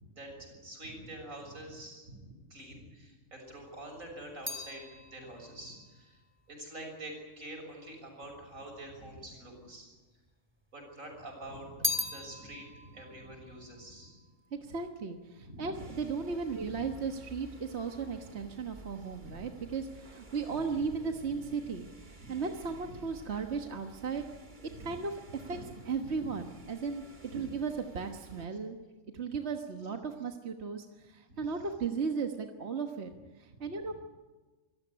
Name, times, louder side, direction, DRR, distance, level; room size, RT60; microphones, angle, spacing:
voice 1, 0.1-6.2 6.5-9.9 10.7-14.2 15.4-16.1 16.7-16.9 19.0-19.5 20.5-21.3 22.6-23.0 24.7-24.9 25.3-25.6 26.0-26.5 27.3-27.4 31.3-31.7 33.1-33.2 33.6-33.9, right 1 dB, 85° right, 2 dB, 7.2 m, -47 dB
sound 1, 3.5-7.9 8.7-9.5 9.8-10.9 11.2-14.8 15.1-15.6, left 2 dB, 10° right, 2.6 m, -40 dB
voice 2, 14.5-21.9 22.3-24.2 24.8-25.6 25.9-27.0 27.3-28.8 29.1-33.1 33.4-33.9, right 5 dB, 55° right, 4 dB, 1.6 m, -36 dB
sound 2, 15.7-28.5, right 1 dB, 35° right, 2.2 m, -53 dB
25.5 x 15.5 x 9.9 m, 1.2 s
omnidirectional pair, 1.4 m